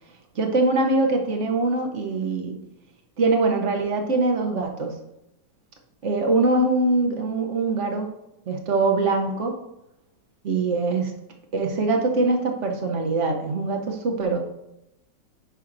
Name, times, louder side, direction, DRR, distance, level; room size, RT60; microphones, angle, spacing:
voice 1, 0.3-2.6 3.2-4.9 6.0-8.1 8.5-9.5 10.4-11.1 11.5-14.4, right 3 dB, 55° right, 3 dB, 0.9 m, -23 dB
9.8 x 5.6 x 2.6 m, 0.88 s
omnidirectional pair, 2.0 m